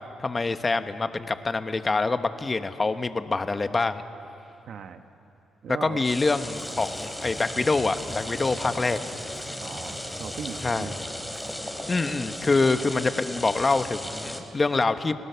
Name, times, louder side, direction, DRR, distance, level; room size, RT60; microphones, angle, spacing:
voice 1, 0.2-4.0 5.8-9.0 10.6-10.9 11.9-15.1, left 3 dB, 25° left, 10 dB, 1.1 m, -25 dB
voice 2, 4.7-5.0 5.6-6.0 9.6-11.0, right 7 dB, 65° right, 8 dB, 1.2 m, -38 dB
sound 1, 6.0-14.4, left 1 dB, 5° left, 2.8 m, -36 dB
Drum kit, 6.5-11.5, right 1 dB, 15° right, 4.4 m, -45 dB
30.0 x 18.0 x 6.9 m, 2.7 s
cardioid pair, 90°, 0 cm